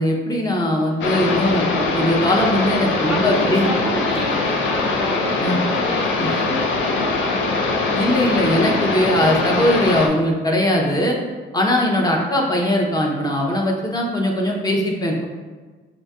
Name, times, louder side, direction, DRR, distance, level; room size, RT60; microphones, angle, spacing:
voice 1, 0.0-1.6 1.9-3.7 5.4-5.6 6.2-6.3 7.9-11.2 11.5-15.3, left 1 dB, 20° left, -1 dB, 0.8 m, -20 dB
sound 1, 1.0-10.1, left 3 dB, 70° left, 0.6 m, -22 dB
voice 2, 3.1-7.8 11.7-11.9, right 1 dB, 5° right, -1 dB, 0.3 m, -31 dB
5.0 x 2.7 x 2.3 m, 1.4 s
cardioid pair, 90°, 20 cm